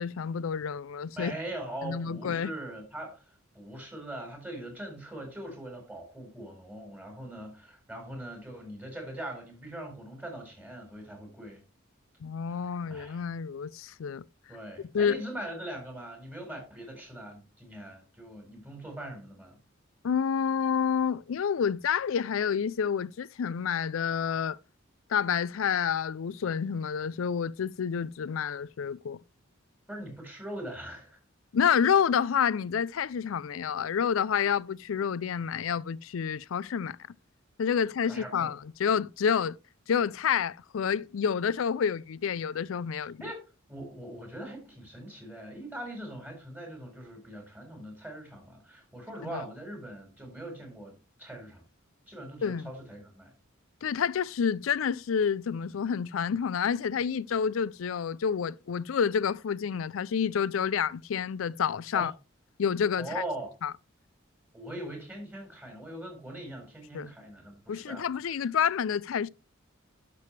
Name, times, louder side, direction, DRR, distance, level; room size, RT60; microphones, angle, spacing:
voice 1, 0.0-1.3 1.8-2.5 12.2-14.2 14.9-15.2 20.0-24.6 25.1-29.2 31.5-37.0 37.6-39.6 39.9-43.2 49.3-49.4 52.4-52.7 53.8-62.1 62.6-63.1 63.6-63.7 66.9-67.1 67.7-69.3, left 7 dB, 75° left, 0.4 m, -29 dB
voice 2, 1.1-3.2 3.5-11.6 12.9-13.2 14.5-19.6 29.9-31.2 38.1-38.5 43.0-43.4 43.7-51.6 52.1-53.3 61.9-62.1 63.0-63.5 64.5-68.0, right 1 dB, 10° right, 4.3 m, -41 dB
11.0 x 6.9 x 3.3 m
head